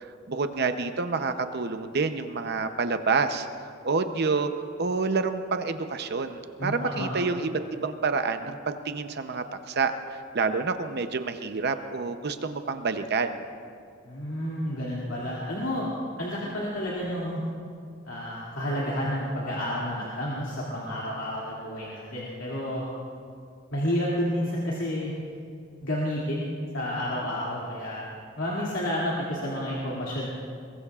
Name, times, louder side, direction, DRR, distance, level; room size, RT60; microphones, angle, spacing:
voice 1, 0.3-3.5 3.8-4.5 4.8-13.4, right 4 dB, 55° right, 8 dB, 0.7 m, -28 dB
voice 2, 6.6-7.1 14.0-15.9 16.2-17.4 18.0-22.9 23.7-25.1 25.8-26.5 26.7-28.1 28.4-30.3, equal, 75° left, -6 dB, 2.6 m, -30 dB
22.0 x 21.5 x 2.4 m, 2.3 s
head